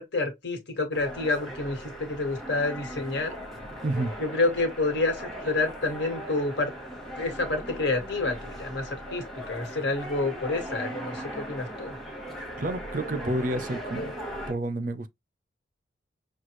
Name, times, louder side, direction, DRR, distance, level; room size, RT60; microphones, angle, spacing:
voice 1, 0.0-3.4 4.2-6.7 7.2-8.8 9.1-12.0, left 2 dB, 65° left, 1.6 m, -28 dB
sound 1, 0.9-14.5, equal, ahead, 1.1 m, -39 dB
voice 2, 3.8-4.1 12.6-14.1 14.5-15.1, right 1 dB, 45° right, 0.5 m, -29 dB
6.4 x 2.3 x 3.0 m
head